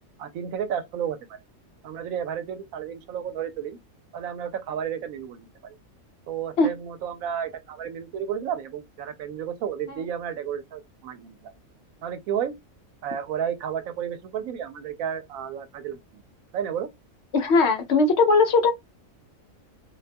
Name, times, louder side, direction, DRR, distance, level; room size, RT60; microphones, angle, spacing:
voice 1, 0.2-1.4 1.8-3.8 4.1-5.7 6.3-11.5 12.0-12.5 13.0-16.0 16.5-16.9, right 8 dB, 80° right, 1.0 m, -32 dB
voice 2, 17.3-18.7, left 3 dB, 65° left, 0.7 m, -19 dB
2.6 x 2.2 x 2.5 m
omnidirectional pair, 1.4 m